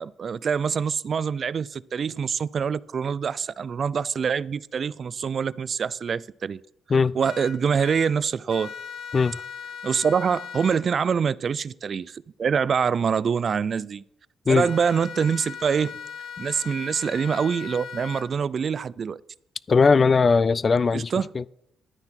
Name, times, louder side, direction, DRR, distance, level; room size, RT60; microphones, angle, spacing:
voice 1, 0.0-6.6 7.1-8.7 9.8-14.0 14.5-16.0 16.4-19.2 20.9-21.3, right 6 dB, 50° right, 0.4 m, -25 dB
sound 1, 7.2-8.1 8.5-10.8 14.5-18.2, left 7 dB, 85° left, 1.9 m, -38 dB
voice 2, 19.7-21.5, left 4 dB, 35° left, 0.4 m, -19 dB
11.5 x 9.6 x 4.5 m
cardioid pair, 90°, 0 cm